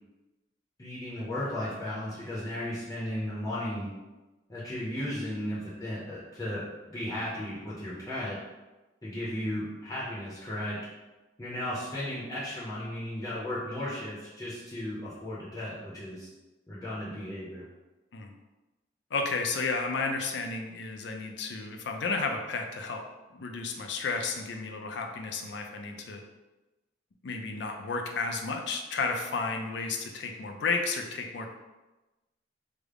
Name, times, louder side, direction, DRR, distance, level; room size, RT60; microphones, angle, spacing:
voice 1, 0.8-3.9 4.5-6.6 6.9-8.4 9.0-10.8 11.4-16.3 16.7-17.6, left 1 dB, 20° left, -8 dB, 0.6 m, -35 dB
voice 2, 19.1-23.0 23.3-26.2 27.2-31.5, left 4 dB, 65° left, 3 dB, 0.4 m, -32 dB
3.3 x 2.0 x 3.5 m, 1.1 s
head